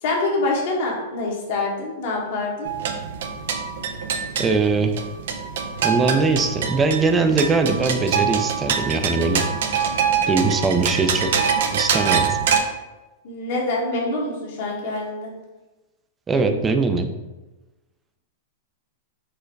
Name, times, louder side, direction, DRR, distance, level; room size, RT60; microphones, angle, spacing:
voice 1, 0.0-2.7 13.2-15.3, left 2 dB, 60° left, -1 dB, 1.3 m, -25 dB
sound 1, 2.6-12.6, right 7 dB, 70° right, 0.5 m, -24 dB
voice 2, 4.4-4.9 5.8-9.4 10.3-11.3 11.7-12.4 16.3-17.1, right 3 dB, 20° right, 6 dB, 0.5 m, -21 dB
4.6 x 2.1 x 4.6 m, 1.1 s
hypercardioid pair, 125°, 0 cm